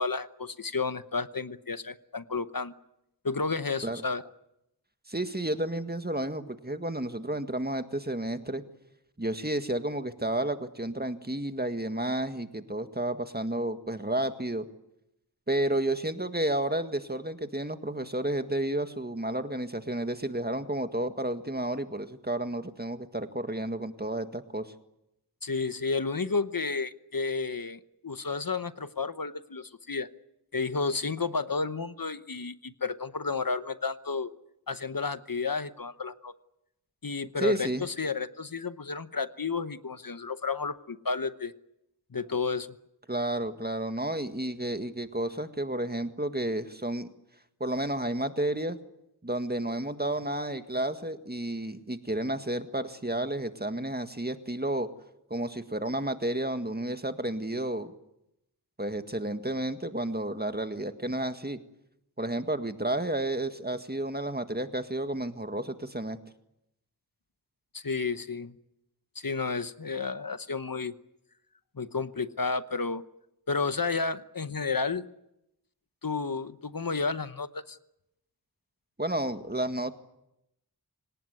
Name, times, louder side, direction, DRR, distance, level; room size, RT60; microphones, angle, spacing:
voice 1, 0.0-2.7 3.2-4.2 25.4-30.1 30.5-34.3 34.7-36.3 37.0-41.5 42.1-42.7 67.7-68.5 69.1-70.9 71.8-73.0 73.5-75.1 76.0-77.8, left 4 dB, 55° left, 12 dB, 1.0 m, -31 dB
voice 2, 5.1-8.6 9.2-14.7 15.5-24.7 37.4-37.8 43.1-47.1 47.6-48.8 49.2-54.9 55.3-57.9 58.8-61.6 62.2-66.2 79.0-79.9, right 1 dB, 25° right, 8 dB, 1.8 m, -31 dB
26.5 x 18.5 x 9.6 m, 0.86 s
wide cardioid pair, 45°, 40 cm